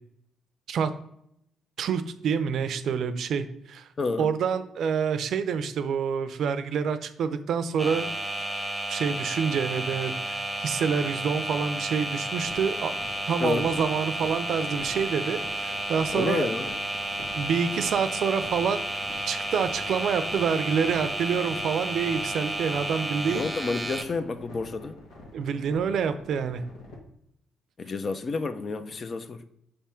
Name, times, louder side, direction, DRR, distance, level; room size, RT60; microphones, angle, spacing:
voice 1, 1.8-3.9 4.2-8.1 8.9-12.9 13.3-16.5 17.3-18.8 19.3-23.5 25.3-26.6, right 6 dB, 70° right, 0.5 m, -27 dB
voice 2, 4.0-4.3 13.4-13.7 16.1-16.7 23.3-25.0 27.8-29.4, left 3 dB, 40° left, 0.5 m, -29 dB
sound 1, 7.8-24.0, right 1 dB, 5° right, 0.9 m, -32 dB
sound 2, 12.4-27.0, left 2 dB, 85° left, 1.5 m, -46 dB
6.6 x 3.5 x 4.3 m
cardioid pair, 90°, 0 cm